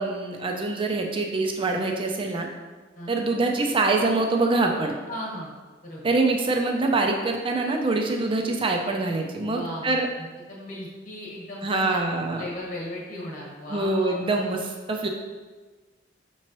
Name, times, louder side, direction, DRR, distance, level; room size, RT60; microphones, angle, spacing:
voice 1, 0.0-2.5 3.1-4.9 6.0-10.1 11.6-12.4 13.7-15.1, right 3 dB, 25° right, 2 dB, 0.4 m, -24 dB
voice 2, 3.0-3.3 5.1-5.5 5.8-6.1 9.5-12.0 12.4-14.4, left 1 dB, 45° left, -3 dB, 1.1 m, -37 dB
5.6 x 3.0 x 3.0 m, 1.3 s
head